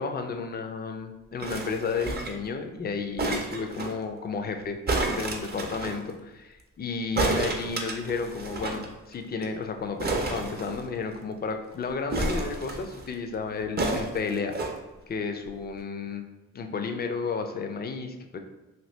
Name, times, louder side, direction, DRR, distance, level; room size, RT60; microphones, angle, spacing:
voice 1, 0.0-4.8 5.1-14.6 15.1-16.2 16.5-18.4, left 5 dB, 30° left, 6 dB, 0.4 m, -32 dB
sound 1, 1.4-2.5 3.2-3.9 4.9-6.0 7.2-8.9 9.1-9.2 9.4-9.6 10.0-11.2 12.1-13.0 13.8-14.7 15.5-15.6, right 2 dB, 30° right, 0.5 m, -30 dB
2.8 x 2.5 x 3.1 m, 1.1 s
cardioid pair, 80°, 35 cm